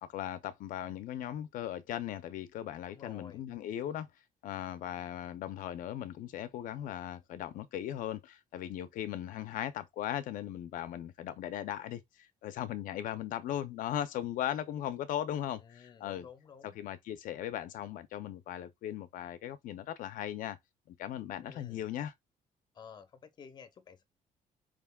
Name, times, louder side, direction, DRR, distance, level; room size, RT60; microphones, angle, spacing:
voice 1, 0.0-4.1 4.4-16.3 16.6-20.6 20.9-22.1, left 11 dB, 80° left, 0.6 m, -38 dB
voice 2, 2.9-3.4 15.6-16.8 21.4-21.8 22.7-24.0, left 6 dB, 30° left, 0.7 m, -52 dB
5.0 x 3.5 x 2.3 m
cardioid pair, 175°, 14 cm